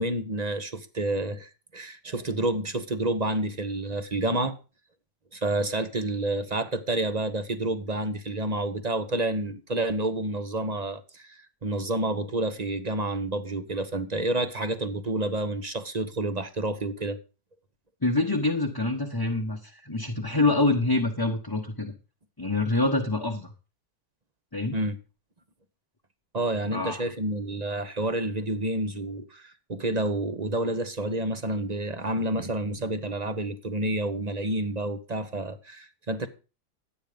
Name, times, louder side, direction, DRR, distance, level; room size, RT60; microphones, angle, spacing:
voice 1, 0.0-4.5 5.3-17.2 24.7-24.9 26.3-36.3, right 2 dB, 25° right, 1.1 m, -29 dB
voice 2, 18.0-21.9 22.4-23.5 24.5-24.7 26.7-27.0, left 2 dB, 15° left, 1.3 m, -26 dB
12.0 x 9.2 x 5.2 m
omnidirectional pair, 1.8 m